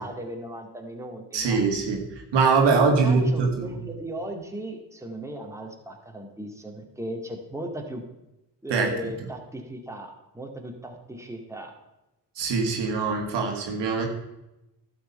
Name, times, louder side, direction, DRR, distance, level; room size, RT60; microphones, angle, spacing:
voice 1, 0.0-1.6 2.6-8.0 8.6-11.7, right 1 dB, 5° right, 2 dB, 2.1 m, -36 dB
voice 2, 1.3-2.0 2.3-3.7 8.7-8.9 12.4-14.1, right 4 dB, 70° right, 2 dB, 1.9 m, -22 dB
11.5 x 6.6 x 5.5 m, 0.95 s
supercardioid pair, 50°, 43 cm